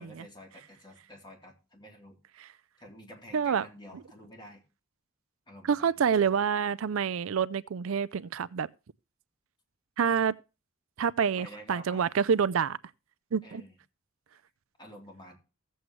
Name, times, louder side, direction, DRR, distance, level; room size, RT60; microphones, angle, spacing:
voice 1, 0.0-2.2 2.8-4.6 5.5-6.5 11.4-12.1 13.4-13.8 14.8-15.4, equal, 20° left, 3.4 m, -49 dB
voice 2, 3.3-3.7 5.6-8.7 10.0-10.3 11.0-12.8 13.3-13.6, right 7 dB, 75° right, 0.4 m, -27 dB
15.5 x 7.8 x 3.2 m
head